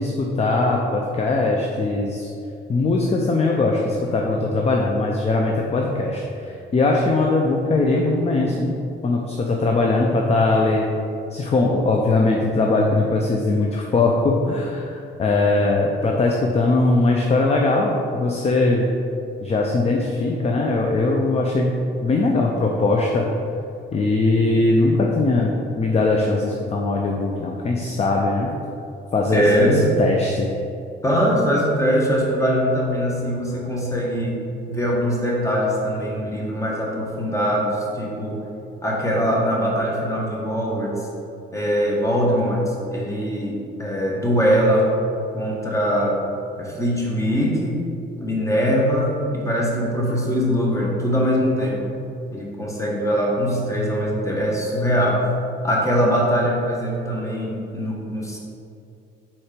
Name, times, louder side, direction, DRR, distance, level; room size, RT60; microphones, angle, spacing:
voice 1, 0.0-2.3 2.7-8.8 9.0-10.9 11.3-18.9 19.4-23.3 23.9-28.5 29.1-29.7 30.0-30.5, left 2 dB, 30° left, 0 dB, 0.6 m, -20 dB
voice 2, 29.3-29.9 31.0-34.4 34.7-38.4 38.8-40.9 41.5-44.9 45.3-46.2 46.6-47.8 48.2-51.9 52.3-55.2 55.6-58.4, equal, 15° left, -3 dB, 1.4 m, -22 dB
4.4 x 4.3 x 5.1 m, 2.6 s
cardioid pair, 90°, 20 cm